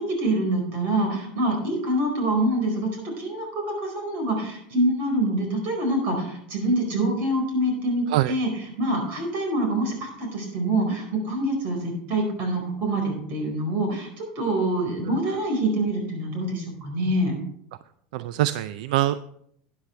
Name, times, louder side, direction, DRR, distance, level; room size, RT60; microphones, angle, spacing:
voice 1, 0.0-17.3, right 1 dB, 50° right, 3 dB, 4.6 m, -25 dB
voice 2, 18.1-19.3, right 14 dB, 75° right, 14 dB, 0.4 m, -24 dB
13.0 x 9.8 x 3.3 m, 0.70 s
supercardioid pair, 145°, 4 cm